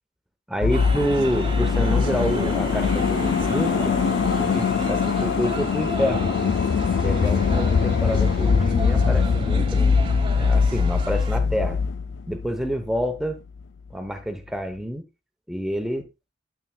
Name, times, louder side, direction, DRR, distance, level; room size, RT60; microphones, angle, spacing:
voice 1, 0.5-3.9 4.3-6.2 7.0-10.0 10.3-11.8 12.3-13.4 13.9-15.0 15.5-16.1, equal, ahead, 0.9 m, -28 dB
sound 1, 0.6-13.0 13.3-13.4, left 5 dB, 85° left, 0.4 m, -22 dB
sound 2, 0.7-11.4, right 2 dB, 25° right, 1.1 m, -34 dB
9.2 x 8.3 x 2.3 m
head